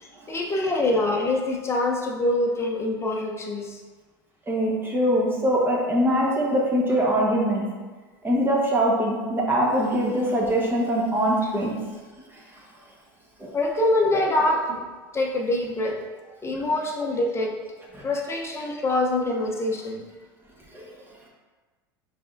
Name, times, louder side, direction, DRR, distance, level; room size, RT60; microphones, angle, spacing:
voice 1, 0.0-3.8 13.5-14.8 15.1-16.0 16.4-17.5 18.0-20.0, left 2 dB, 20° left, 0 dB, 0.8 m, -25 dB
voice 2, 4.5-7.6 8.2-11.7 13.4-13.6 14.1-14.3 16.5-16.6 17.9-18.0 20.7-20.9, equal, 20° right, -3 dB, 1.2 m, -23 dB
5.3 x 3.3 x 2.6 m, 1.4 s
hypercardioid pair, 80°, 12 cm